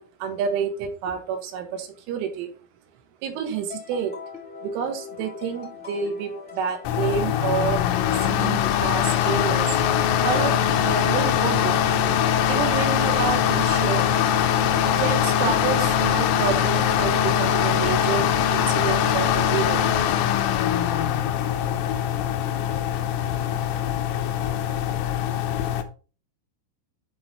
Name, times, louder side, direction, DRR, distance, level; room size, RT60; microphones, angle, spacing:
voice 1, 0.0-2.6 3.2-4.1 4.6-7.8 8.1-9.7 10.2-10.5 10.8-12.0 12.5-14.1 15.0-19.9, right 7 dB, 80° right, 6 dB, 3.7 m, -29 dB
sound 1, 3.7-17.4, left 4 dB, ahead, 2.3 m, -40 dB
sound 2, 6.9-25.8, left 9 dB, 85° left, 3.4 m, -22 dB
11.0 x 3.9 x 4.3 m, 0.37 s
omnidirectional pair, 5.7 m